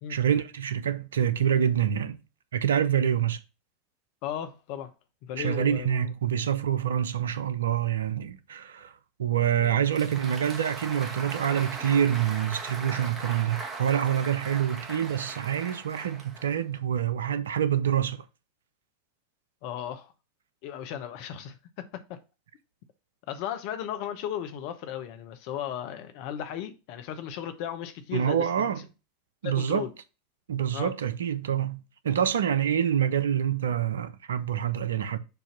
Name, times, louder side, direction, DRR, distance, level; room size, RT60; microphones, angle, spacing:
voice 1, 0.1-2.2 2.5-3.4 5.4-8.9 9.2-18.2 28.1-28.8 29.4-29.9 30.5-35.2, right 9 dB, 80° right, 0.6 m, -26 dB
voice 2, 4.2-4.9 5.2-6.0 9.6-9.7 19.6-20.1 20.6-22.2 23.3-28.8 29.4-29.9 30.7-30.9, left 10 dB, 60° left, 0.9 m, -36 dB
Applause, 9.6-16.8, right 3 dB, 25° right, 1.5 m, -39 dB
6.9 x 2.8 x 5.8 m
hypercardioid pair, 85°, 0 cm